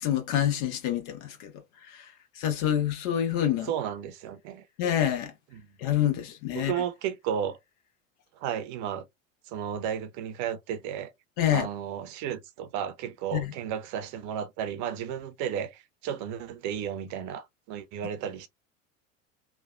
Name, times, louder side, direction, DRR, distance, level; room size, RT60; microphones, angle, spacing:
voice 1, 0.0-1.5 2.4-3.7 4.8-5.3 5.8-6.7 11.4-11.7 13.3-13.5, left 11 dB, 60° left, 1.1 m, -26 dB
voice 2, 3.6-4.6 5.5-5.7 6.5-7.6 8.4-9.0 9.5-11.1 11.5-18.5, right 9 dB, 50° right, 0.7 m, -33 dB
3.2 x 2.2 x 2.3 m
hypercardioid pair, 85°, 40 cm